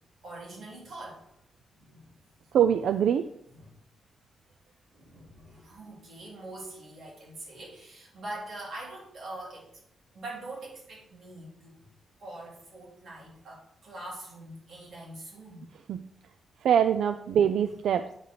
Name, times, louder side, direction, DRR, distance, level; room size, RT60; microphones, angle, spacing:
voice 1, 0.2-1.3 1.8-2.1 3.5-3.7 4.9-9.7 10.1-11.7 12.2-15.7, right 2 dB, 55° right, -5 dB, 3.7 m, -43 dB
voice 2, 2.5-3.3 15.9-16.0 16.6-18.1, right 9 dB, 90° right, 10 dB, 0.4 m, -23 dB
8.9 x 5.0 x 4.7 m, 0.72 s
wide cardioid pair, 155°, 0 cm